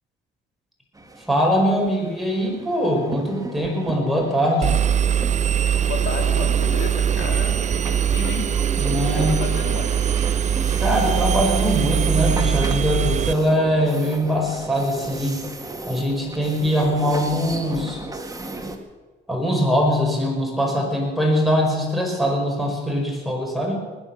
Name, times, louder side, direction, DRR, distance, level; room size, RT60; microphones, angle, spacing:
sound 1, 0.9-18.8, right 2 dB, 15° right, 1.7 m, -36 dB
voice 1, 1.3-4.8 8.8-9.4 10.8-15.4 15.9-18.0 19.3-23.7, equal, ahead, -1 dB, 5.3 m, -22 dB
Engine, 4.6-13.3, right 8 dB, 35° right, 0.5 m, -21 dB
voice 2, 5.9-8.5 9.0-10.0, left 5 dB, 80° left, 3 dB, 2.3 m, -32 dB
21.0 x 9.5 x 6.3 m, 1.3 s
cardioid pair, 90°, 20 cm